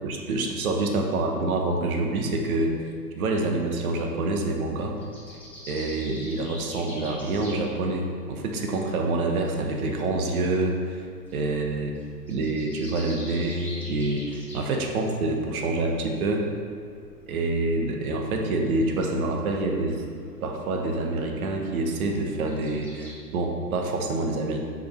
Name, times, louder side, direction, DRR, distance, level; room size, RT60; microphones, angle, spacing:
voice 1, 0.0-2.8 3.2-5.0 5.7-11.0 11.3-11.9 12.3-16.5 17.3-20.0 20.4-24.6, right 2 dB, 60° right, 2 dB, 1.3 m, -27 dB
sound 1, 4.7-23.1, left 1 dB, 5° left, 2.0 m, -47 dB
6.3 x 5.3 x 5.6 m, 2.2 s
hypercardioid pair, 115°, 49 cm